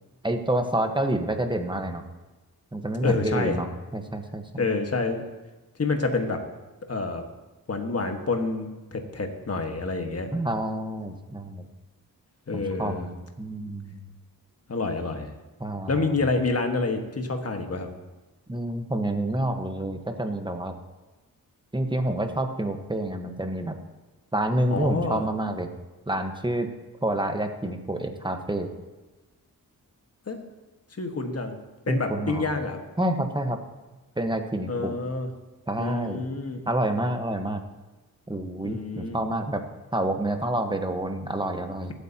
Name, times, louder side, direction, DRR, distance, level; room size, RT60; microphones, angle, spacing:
voice 1, 0.2-2.0 2.7-4.7 10.3-11.7 12.5-14.1 15.6-16.1 18.5-20.7 21.7-23.8 24.3-25.7 26.1-26.7 27.0-28.7 31.9-32.5 33.0-33.6 34.2-34.9 35.7-36.2 36.7-37.6 38.3-39.6 39.9-41.9, right 1 dB, 15° right, 5 dB, 1.3 m, -28 dB
voice 2, 3.0-3.6 4.6-5.3 5.8-6.4 6.9-7.2 7.7-10.3 12.5-13.1 14.7-15.3 15.9-17.9 24.7-25.2 30.3-30.4 31.0-31.6 31.9-32.8 34.7-35.3 35.8-36.6 38.6-39.2, left 3 dB, 40° left, 4 dB, 1.6 m, -28 dB
23.5 x 8.4 x 2.9 m, 1.2 s
cardioid pair, 80°, 37 cm